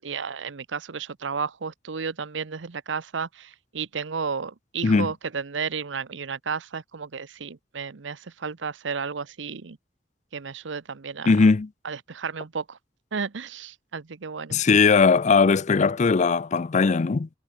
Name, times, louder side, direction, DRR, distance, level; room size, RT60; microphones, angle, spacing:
voice 1, 0.0-9.8 10.3-11.3 11.8-12.8 13.1-14.6, right 5 dB, 90° right, 0.8 m, -33 dB
voice 2, 11.2-11.7 14.5-17.3, left 4 dB, 40° left, 0.4 m, -19 dB
head